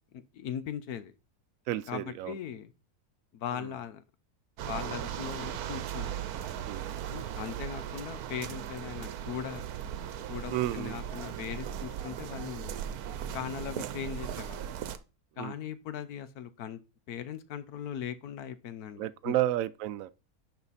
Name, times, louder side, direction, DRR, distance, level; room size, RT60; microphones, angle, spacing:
voice 1, 0.1-1.1 1.9-2.7 3.3-4.0 4.6-6.2 7.1-9.7 10.3-12.8 13.3-14.6 15.4-16.8 17.1-19.3, left 9 dB, 90° left, 1.3 m, -39 dB
voice 2, 1.7-2.4 3.5-3.7 6.6-7.1 10.5-11.0 13.7-13.9 15.4-15.6 19.0-20.1, right 13 dB, 70° right, 0.9 m, -32 dB
sound 1, 4.6-15.0, right 10 dB, 90° right, 1.2 m, -38 dB
10.5 x 4.3 x 4.1 m
omnidirectional pair, 1.6 m